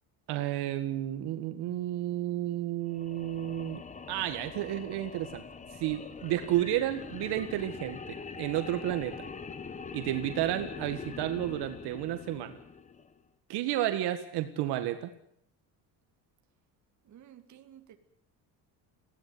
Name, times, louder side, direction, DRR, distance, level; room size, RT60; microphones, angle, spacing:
voice 1, 0.3-3.8 4.1-5.4 5.7-9.3 9.9-12.6 13.5-15.1, right 13 dB, 75° right, 8 dB, 1.8 m, -32 dB
sound 1, 2.9-13.2, left 5 dB, 20° left, 1.1 m, -43 dB
voice 2, 17.0-18.0, right 10 dB, 45° right, 6 dB, 2.4 m, -53 dB
21.5 x 16.5 x 9.5 m, 0.69 s
cardioid pair, 165°, 40 cm